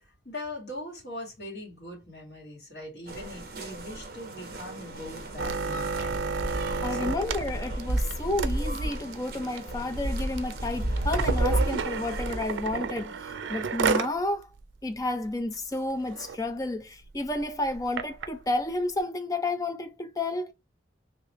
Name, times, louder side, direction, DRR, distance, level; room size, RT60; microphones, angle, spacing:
voice 1, 0.3-6.3 6.9-7.3, left 1 dB, 60° left, 1.8 m, -41 dB
sound 1, 3.1-12.9, right 1 dB, 50° right, 0.8 m, -32 dB
sound 2, 5.4-14.2 14.6-14.7 15.0-15.3 15.7-15.8 16.1-16.4 17.0-18.3 19.0-19.1, right 5 dB, 85° right, 0.4 m, -31 dB
voice 2, 6.8-14.5 14.8-20.5, left 2 dB, 20° left, 0.4 m, -31 dB
3.3 x 2.8 x 3.0 m
head